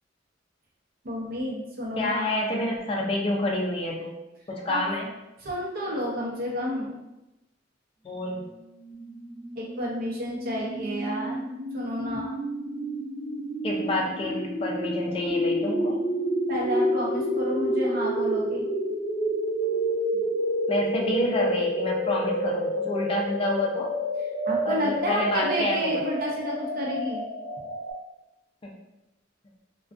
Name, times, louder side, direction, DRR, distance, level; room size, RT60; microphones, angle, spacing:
voice 1, 1.0-2.3 4.7-4.8 5.4-7.0 9.6-11.4 11.7-12.3 16.5-18.7 24.5-27.2, equal, 55° right, -3 dB, 0.7 m, -30 dB
voice 2, 2.0-4.1 4.5-5.1 8.0-8.5 13.6-16.0 20.7-23.9 24.6-26.0 28.6-28.7, left 1 dB, 30° left, -1 dB, 0.4 m, -28 dB
sound 1, 8.8-27.9, equal, 5° right, 0.9 m, -29 dB
2.4 x 2.2 x 2.4 m, 0.95 s
head